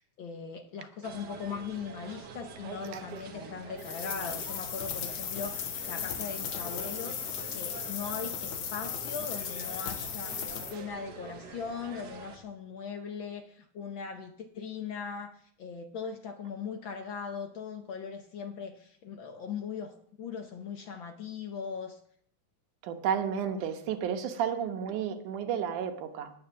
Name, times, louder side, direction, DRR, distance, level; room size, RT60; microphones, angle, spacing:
voice 1, 0.2-22.0, left 6 dB, 80° left, 5 dB, 1.1 m, -39 dB
sound 1, 1.0-12.4, right 5 dB, 60° right, 1.1 m, -46 dB
sound 2, 3.8-10.7, left 8 dB, 60° left, 1.4 m, -36 dB
voice 2, 22.8-26.3, right 8 dB, 85° right, 8 dB, 2.6 m, -32 dB
10.0 x 9.7 x 7.0 m, 0.63 s
omnidirectional pair, 3.5 m